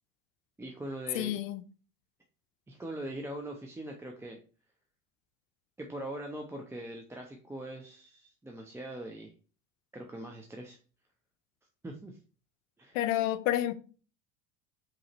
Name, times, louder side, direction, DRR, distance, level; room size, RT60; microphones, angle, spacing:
voice 1, 0.6-1.4 2.7-4.4 5.8-9.3 9.9-10.8 11.8-12.2 12.8-13.0, right 1 dB, 5° right, 0.5 m, -41 dB
voice 2, 1.1-1.6 12.9-13.7, left 13 dB, 65° left, 0.6 m, -29 dB
4.9 x 3.0 x 2.8 m
hypercardioid pair, 75°, 41 cm